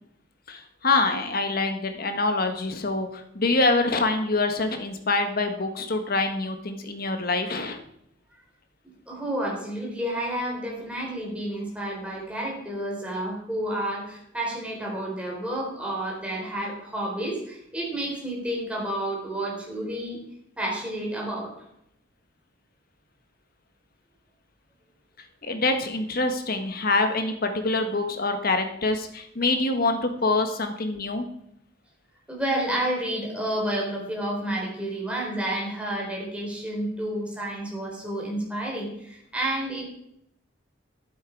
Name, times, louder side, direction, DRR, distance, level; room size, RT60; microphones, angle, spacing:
voice 1, 0.5-7.8 25.4-31.3, left 3 dB, 55° left, 6 dB, 1.6 m, -25 dB
voice 2, 8.8-20.2 20.6-21.7 32.3-39.9, right 1 dB, 5° right, -3 dB, 4.4 m, -30 dB
11.5 x 9.4 x 4.7 m, 0.76 s
head